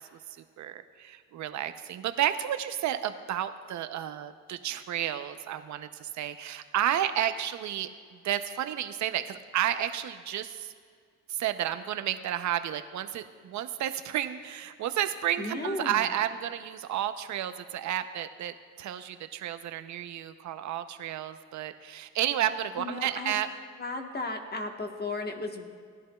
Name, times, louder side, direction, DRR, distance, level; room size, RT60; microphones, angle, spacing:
voice 1, 0.6-7.9 8.2-10.7 11.3-23.5, right 11 dB, 70° right, 10 dB, 0.7 m, -31 dB
voice 2, 15.4-16.1 22.8-23.3 23.8-25.7, left 2 dB, 35° left, 4 dB, 1.3 m, -35 dB
18.0 x 11.0 x 2.3 m, 2.1 s
cardioid pair, 90°, 30 cm